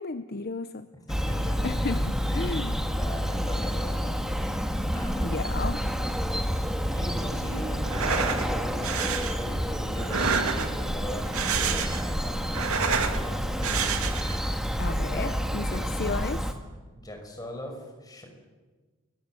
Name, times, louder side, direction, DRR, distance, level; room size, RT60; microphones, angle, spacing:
voice 1, 0.0-0.9 1.6-2.7 5.2-5.9 14.8-16.5, left 3 dB, 45° left, 11 dB, 0.7 m, -33 dB
voice 2, 1.1-1.7 2.2-2.6 2.9-4.4 4.9-5.3 6.9-13.9 15.1-15.3 15.6-15.9 17.0-18.3, equal, 15° left, 3 dB, 5.7 m, -40 dB
Bird vocalization bird call bird song, 1.1-16.5, equal, ahead, 1.8 m, -29 dB
sound 1, 7.8-8.5 8.8-9.3 10.0-10.9 11.2-12.1 12.4-13.2 13.6-14.4, right 6 dB, 80° right, 2.5 m, -28 dB
30.0 x 23.0 x 7.6 m, 1.3 s
head